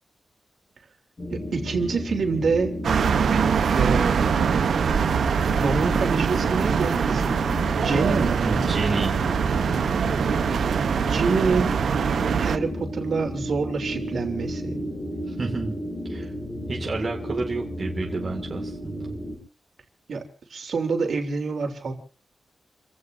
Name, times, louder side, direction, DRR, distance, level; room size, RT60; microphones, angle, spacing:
sound 1, 1.2-19.4, equal, 30° left, 7.0 m, -33 dB
voice 1, 1.3-2.7 3.7-4.3 5.5-7.4 7.8-8.7 11.0-11.7 12.4-14.8 20.1-20.2 20.5-21.9, right 4 dB, 60° right, 3 dB, 3.2 m, -26 dB
sound 2, 2.8-12.6, right 6 dB, 80° right, 0.8 m, -23 dB
voice 2, 8.4-9.2 15.3-15.8 16.1-16.3 16.7-19.2, right 3 dB, 35° right, 0 dB, 2.0 m, -30 dB
30.0 x 16.5 x 2.6 m, 0.39 s
wide cardioid pair, 170°, 0 cm